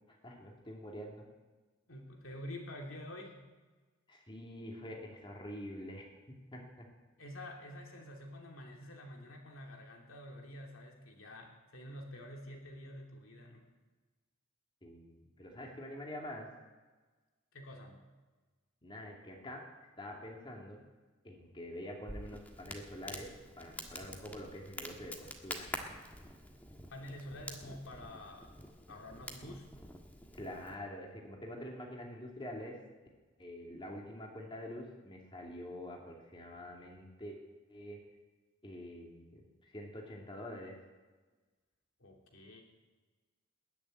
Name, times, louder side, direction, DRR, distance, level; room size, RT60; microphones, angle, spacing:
voice 1, 0.1-1.3 4.1-6.9 14.8-16.5 18.8-19.6 20.0-20.9 21.2-23.3 23.6-25.7 30.4-32.8 33.4-37.4 37.7-38.0 38.6-40.8, left 1 dB, 25° left, -1 dB, 2.7 m, -46 dB
voice 2, 1.9-3.5 7.2-13.7 17.5-18.0 26.9-28.5 28.9-29.7 42.0-42.6, left 1 dB, 75° left, 1 dB, 2.8 m, -48 dB
Crackle, 22.1-30.7, left 1 dB, 10° left, 1.5 m, -47 dB
20.5 x 7.2 x 9.3 m, 1.3 s
head